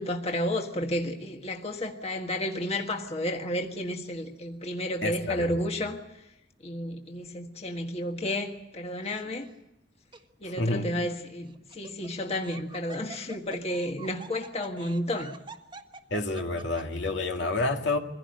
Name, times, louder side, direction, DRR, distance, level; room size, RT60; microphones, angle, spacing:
voice 1, 0.0-6.3 6.6-9.5 10.4-15.3, left 1 dB, 35° left, 1.6 m, -32 dB
voice 2, 5.0-5.5 10.4-10.9 16.1-18.0, left 2 dB, 75° left, 2.2 m, -29 dB
Laughter, 9.0-9.5 10.1-10.2 11.5-17.1, right 4 dB, 25° right, 1.3 m, -46 dB
24.0 x 16.5 x 9.7 m
head